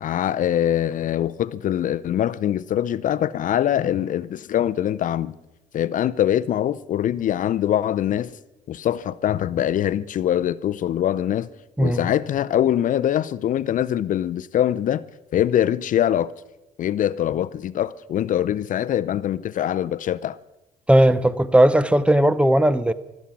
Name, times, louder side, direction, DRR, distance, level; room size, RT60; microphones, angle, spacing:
voice 1, 0.0-5.3 5.7-8.3 8.7-11.5 11.8-15.0 15.3-16.3 16.8-20.4, left 11 dB, 50° left, 0.5 m, -23 dB
voice 2, 20.9-22.9, right 1 dB, 5° right, 0.7 m, -17 dB
13.5 x 12.5 x 8.5 m
cardioid pair, 110°, 17 cm